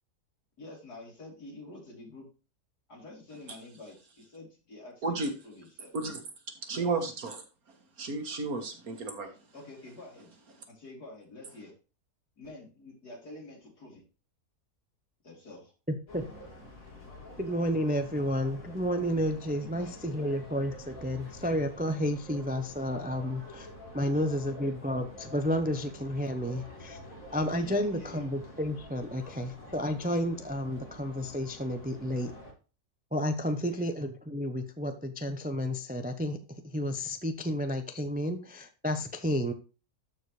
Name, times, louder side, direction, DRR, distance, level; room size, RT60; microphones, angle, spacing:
voice 1, 0.6-2.3 2.9-5.9 6.7-6.9 9.5-10.3 10.8-11.7 12.4-14.0 15.2-15.7 19.6-20.1 24.0-24.5 27.6-28.3 33.7-33.9, left 2 dB, 90° left, -2 dB, 4.0 m, -48 dB
voice 2, 6.7-7.4 8.0-9.3, right 3 dB, 65° right, 5 dB, 2.0 m, -32 dB
voice 3, 15.9-16.2 17.4-23.7 23.9-27.0 27.3-32.3 33.1-36.4 36.7-39.5, equal, 10° right, 8 dB, 0.4 m, -31 dB
sound 1, 16.1-32.5, left 1 dB, 60° left, 2.9 m, -48 dB
13.0 x 4.7 x 3.2 m, 0.33 s
omnidirectional pair, 1.6 m